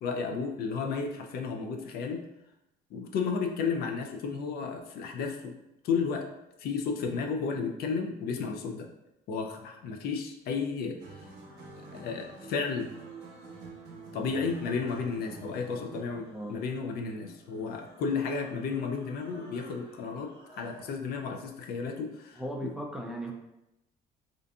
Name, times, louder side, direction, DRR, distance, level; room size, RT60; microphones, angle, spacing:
voice 1, 0.0-2.2 2.9-5.6 5.8-6.3 6.6-8.9 9.3-11.3 11.8-12.9 14.1-22.7, left 5 dB, 65° left, 4 dB, 0.4 m, -33 dB
sound 1, 11.0-21.0, equal, 40° left, 1.2 m, -55 dB
sound 2, 11.0-16.3, right 3 dB, 75° right, 0.7 m, -48 dB
voice 2, 22.4-23.3, right 1 dB, 5° right, 0 dB, 0.3 m, -36 dB
2.5 x 2.5 x 2.3 m, 0.87 s
cardioid pair, 110°, 17 cm